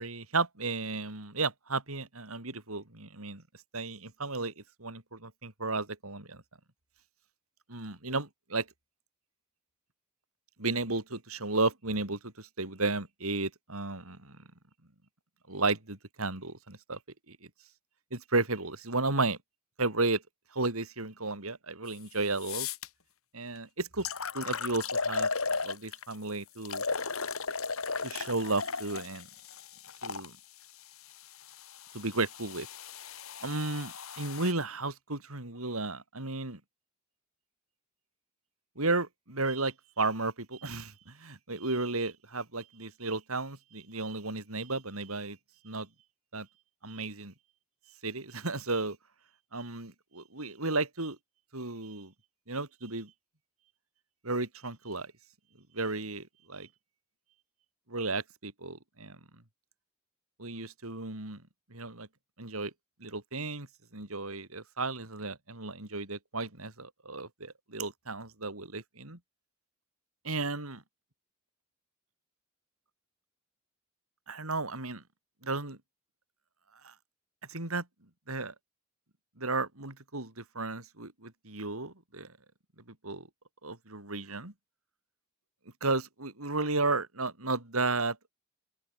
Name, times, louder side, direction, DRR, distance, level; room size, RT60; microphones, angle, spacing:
voice 1, 0.0-3.4 3.7-6.4 7.7-8.7 10.6-14.4 15.5-17.0 17.3-17.4 18.1-19.4 19.8-20.2 20.5-22.7 23.3-24.1 24.3-26.8 28.0-29.3 30.0-30.4 31.9-32.7 33.4-36.6 38.8-45.4 45.6-45.9 46.3-46.5 46.8-47.3 48.0-49.0 49.5-51.2 51.5-52.1 52.5-53.1 54.2-55.1 55.7-56.7 57.9-59.2 60.4-61.4 61.7-62.1 62.4-62.7 63.0-63.7 63.9-69.2 70.2-70.8 74.3-75.0 75.4-75.8 76.8-76.9 77.5-77.8 78.3-78.5 79.4-82.3 83.0-83.2 83.6-84.5 85.8-88.2, right 3 dB, 85° right, 4.6 m, -33 dB
sound 1, 21.9-22.0 22.4-22.9 23.6-23.7 24.0-26.1 26.6-30.3 31.1-34.5, left 5 dB, 75° left, 3.1 m, -36 dB
open air
head